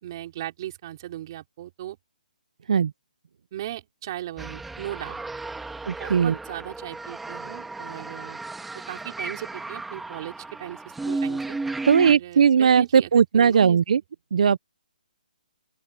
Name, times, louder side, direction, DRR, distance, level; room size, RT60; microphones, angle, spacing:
voice 1, 0.0-2.0 3.5-5.2 6.0-8.4 8.7-11.6 12.0-13.8, right 13 dB, 25° right, 4.1 m, -37 dB
sound 1, 4.4-12.1, right 3 dB, 5° right, 1.3 m, -34 dB
voice 2, 5.9-6.3 11.8-14.0 14.3-14.6, right 7 dB, 45° right, 0.4 m, -18 dB
open air
hypercardioid pair, 175°, 5 cm